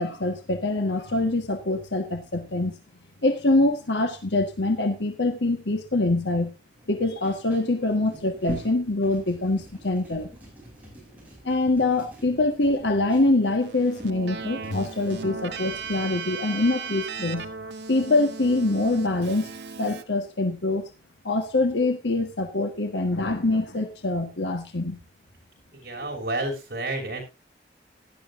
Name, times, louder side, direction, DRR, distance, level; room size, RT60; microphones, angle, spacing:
voice 1, 0.0-2.8 3.2-6.5 6.9-10.3 11.4-17.5 17.9-19.5 19.8-20.9 21.2-25.0, left 2 dB, 90° left, 7 dB, 1.4 m, -24 dB
sound 1, 6.7-16.1, right 1 dB, 10° right, 6.7 m, -44 dB
Keyboard (musical), 13.6-20.0, right 5 dB, 85° right, 1.2 m, -37 dB
voice 2, 25.7-27.2, right 2 dB, 55° right, 0 dB, 5.7 m, -30 dB
17.0 x 11.0 x 2.6 m, 0.25 s
head